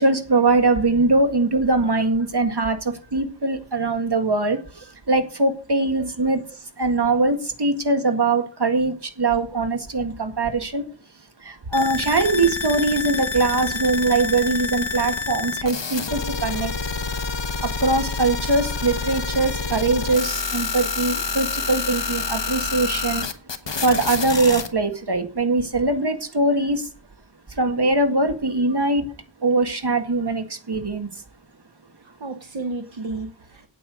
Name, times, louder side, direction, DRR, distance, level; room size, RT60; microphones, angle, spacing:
voice 1, 0.0-6.4 6.8-10.9 11.4-16.7 17.6-23.3 23.8-26.9 27.5-29.1 29.4-31.2, right 2 dB, 60° right, 7 dB, 1.9 m, -22 dB
sound 1, 11.7-24.7, left 4 dB, 70° left, 1.2 m, -28 dB
voice 2, 32.0-33.7, right 3 dB, 80° right, 7 dB, 1.1 m, -33 dB
8.9 x 8.7 x 6.4 m, 0.38 s
wide cardioid pair, 50°, 46 cm